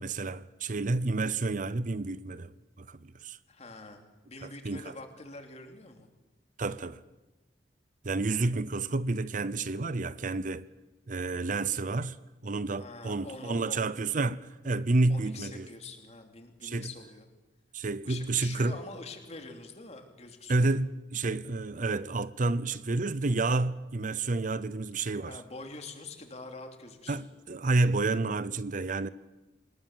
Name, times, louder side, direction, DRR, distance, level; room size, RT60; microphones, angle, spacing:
voice 1, 0.0-2.5 2.8-3.4 4.4-4.8 6.6-7.0 8.0-10.7 11.1-12.2 12.4-15.7 16.6-16.9 17.7-18.7 20.5-25.4 27.1-29.1, right 3 dB, 50° right, 0.7 m, -30 dB
voice 2, 3.5-6.1 12.8-13.9 15.1-17.3 18.0-20.7 25.2-27.3, left 3 dB, 40° left, 3.0 m, -45 dB
26.0 x 20.0 x 7.4 m
head